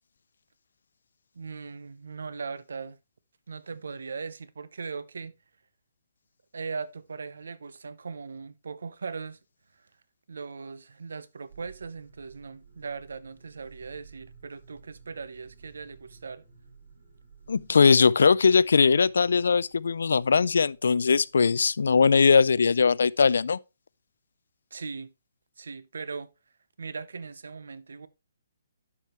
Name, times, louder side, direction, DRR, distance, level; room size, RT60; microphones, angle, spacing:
voice 1, 1.3-3.0 3.5-5.3 6.5-9.4 10.3-16.4 24.7-25.1 25.6-26.3 26.8-28.1, right 5 dB, 90° right, 0.7 m, -39 dB
sound 1, 11.5-21.9, right 5 dB, 50° right, 2.9 m, -55 dB
voice 2, 17.5-23.6, left 5 dB, 75° left, 0.3 m, -20 dB
11.0 x 4.9 x 3.1 m
hypercardioid pair, 175°, 0 cm